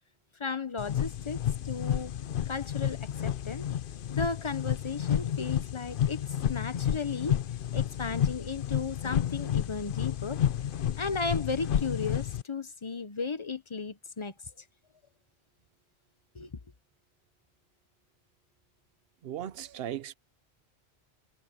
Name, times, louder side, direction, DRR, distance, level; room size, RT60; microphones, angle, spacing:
voice 1, 0.4-2.1 2.5-3.7 4.1-7.4 7.7-10.4 11.0-14.6 16.3-16.5, left 4 dB, 30° left, 0.8 m, -35 dB
sound 1, 0.8-12.4, left 10 dB, 60° left, 0.8 m, -31 dB
voice 2, 19.2-20.1, right 11 dB, 70° right, 0.8 m, -37 dB
omnidirectional pair, 1.1 m